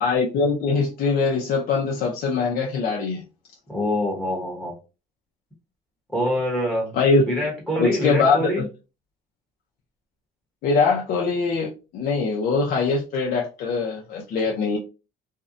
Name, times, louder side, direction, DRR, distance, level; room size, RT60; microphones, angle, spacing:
voice 1, 0.0-3.2 6.9-7.2 7.8-8.6 10.6-14.8, left 4 dB, 60° left, 0.5 m, -22 dB
voice 2, 3.7-4.8 6.1-6.9 7.3-8.7, equal, 5° left, 0.9 m, -25 dB
2.6 x 2.1 x 2.5 m
cardioid pair, 110°, 17 cm